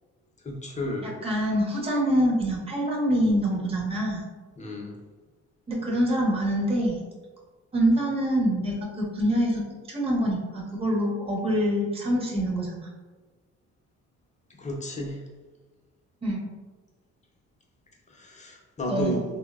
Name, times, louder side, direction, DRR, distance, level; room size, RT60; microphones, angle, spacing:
voice 1, 0.4-1.2 4.6-5.0 14.6-15.2 18.1-19.3, left 1 dB, 25° left, 0 dB, 0.5 m, -32 dB
voice 2, 1.0-4.2 5.7-7.0 7.7-12.9 16.2-16.5 18.9-19.2, equal, 20° right, -3 dB, 0.6 m, -25 dB
3.0 x 2.0 x 2.3 m, 1.3 s
cardioid pair, 90°, 30 cm